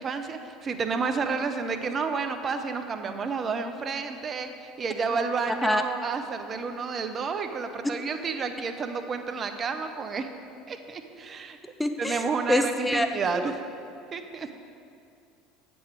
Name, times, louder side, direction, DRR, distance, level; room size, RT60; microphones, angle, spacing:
voice 1, 0.0-10.3 10.7-11.6 12.0-13.6 14.1-14.5, right 5 dB, 35° right, 7 dB, 0.6 m, -30 dB
voice 2, 5.5-5.8 7.8-7.9 11.8-13.1 13.3-13.5, left 1 dB, 5° left, 7 dB, 0.4 m, -26 dB
8.6 x 6.2 x 4.7 m, 2.5 s
hypercardioid pair, 70°, 0 cm